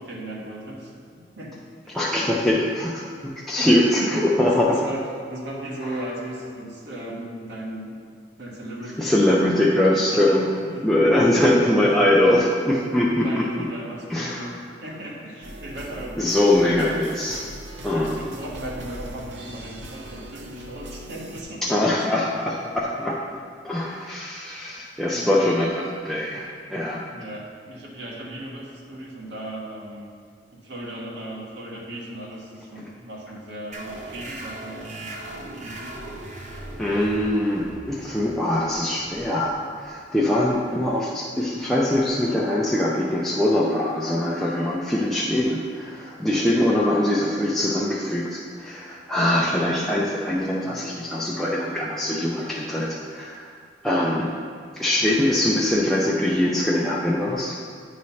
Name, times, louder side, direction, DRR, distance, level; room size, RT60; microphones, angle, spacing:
voice 1, 0.0-1.7 2.0-2.5 3.6-3.7 4.0-8.0 8.4-9.2 9.6-10.9 11.2-12.5 13.1-16.2 16.6-16.9 17.9-21.9 25.1-25.4 27.1-30.1 30.5-35.2 35.6-36.0 50.6-50.8 54.1-54.2, right 1 dB, 75° right, -3 dB, 1.3 m, -37 dB
voice 2, 1.9-4.8 9.0-10.5 10.8-13.5 14.1-14.5 16.2-17.5 17.8-18.2 21.6-23.4 23.6-27.0 36.8-53.5 53.8-54.3 54.7-57.6, left 1 dB, ahead, -5 dB, 0.5 m, -22 dB
sound 1, 15.4-21.4, right 1 dB, 90° right, 0.8 m, -39 dB
sound 2, 33.7-40.8, right 1 dB, 45° right, 0.8 m, -39 dB
9.4 x 3.2 x 5.5 m, 2.1 s
head